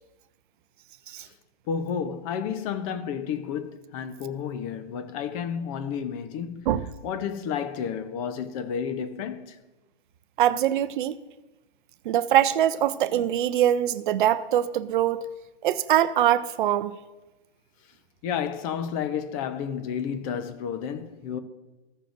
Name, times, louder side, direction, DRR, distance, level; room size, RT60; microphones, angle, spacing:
voice 1, 1.7-6.7 7.0-9.6 18.2-21.4, left 7 dB, 35° left, 0.8 m, -31 dB
voice 2, 10.4-11.1 12.1-15.2 15.6-17.0, right 11 dB, 50° right, 0.5 m, -23 dB
15.5 x 6.7 x 2.6 m
hypercardioid pair, 140°, 32 cm